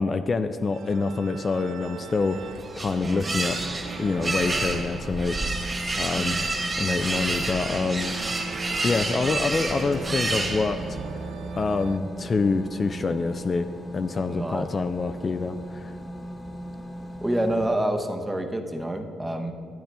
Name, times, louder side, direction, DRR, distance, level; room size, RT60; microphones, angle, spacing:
voice 1, 0.0-2.4 2.8-3.6 4.0-6.4 6.8-8.1 8.8-10.8 11.6-13.7 13.9-15.9, left 4 dB, 35° left, 8 dB, 0.4 m, -26 dB
sound 1, 0.7-12.0, right 7 dB, 70° right, 0.4 m, -41 dB
sound 2, 2.2-11.1, right 2 dB, 30° right, 1.8 m, -29 dB
sound 3, 3.3-17.7, equal, 10° left, 1.2 m, -38 dB
voice 2, 6.2-6.5 14.3-14.7 17.2-19.5, right 1 dB, 10° right, 6 dB, 0.8 m, -28 dB
12.0 x 8.7 x 3.4 m, 2.5 s
cardioid pair, 90°, 0 cm